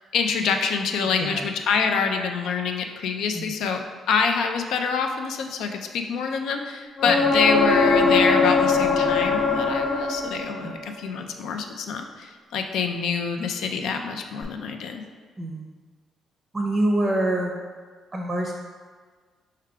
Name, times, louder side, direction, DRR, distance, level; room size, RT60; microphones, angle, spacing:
voice 1, 0.1-3.8 4.1-15.0, left 5 dB, 80° left, 5 dB, 0.4 m, -26 dB
voice 2, 1.0-1.5 3.3-3.5 7.1-7.2 10.6-10.7 15.4-15.7 16.5-17.5 18.1-18.5, right 1 dB, 25° right, 0 dB, 0.5 m, -26 dB
sound 1, 7.0-10.7 14.4-14.5, left 3 dB, 30° left, 0.7 m, -21 dB
4.7 x 2.3 x 4.6 m, 1.5 s
cardioid pair, 90°, 0 cm